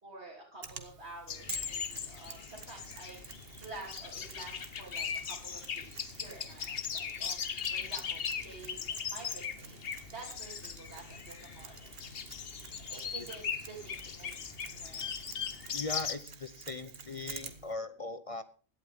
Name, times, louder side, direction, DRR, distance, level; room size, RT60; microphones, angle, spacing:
voice 1, 0.0-11.9 12.8-15.1, right 2 dB, 85° right, -5 dB, 3.4 m, -50 dB
Mechanisms, 0.6-17.7, right 4 dB, 65° right, 1.5 m, -50 dB
sound 1, 1.3-16.1, left 7 dB, 65° left, 1.1 m, -39 dB
voice 2, 15.7-18.4, left 3 dB, 40° left, 12 dB, 0.7 m, -39 dB
16.5 x 11.5 x 3.6 m, 0.38 s
omnidirectional pair, 1.1 m